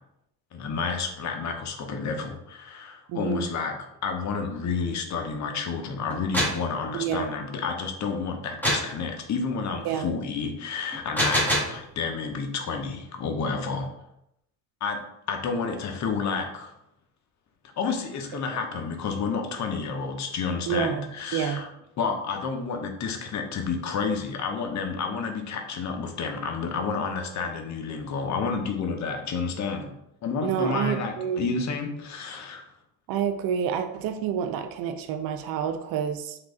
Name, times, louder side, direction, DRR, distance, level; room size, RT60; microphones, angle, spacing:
voice 1, 0.5-3.7 4.0-13.9 14.8-15.0 15.3-16.7 17.8-21.7 22.0-29.9 30.2-32.7, left 5 dB, 40° left, 4 dB, 0.7 m, -30 dB
voice 2, 3.1-3.4 6.9-7.4 9.8-10.2 20.7-21.6 30.4-31.5 33.1-36.4, right 8 dB, 55° right, 7 dB, 0.5 m, -28 dB
sound 1, 6.1-6.7 8.6-8.9 10.9-11.8, equal, 5° left, 1.3 m, -24 dB
3.1 x 2.5 x 3.6 m, 0.80 s
supercardioid pair, 70°, 44 cm